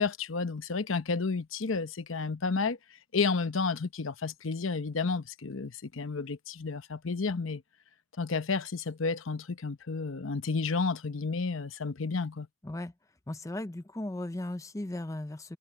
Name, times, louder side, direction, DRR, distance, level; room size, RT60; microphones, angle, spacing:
voice 1, 0.0-2.8 3.1-7.6 8.2-12.5, left 4 dB, 80° left, 0.8 m, -31 dB
voice 2, 13.3-15.6, left 1 dB, 15° left, 0.5 m, -36 dB
head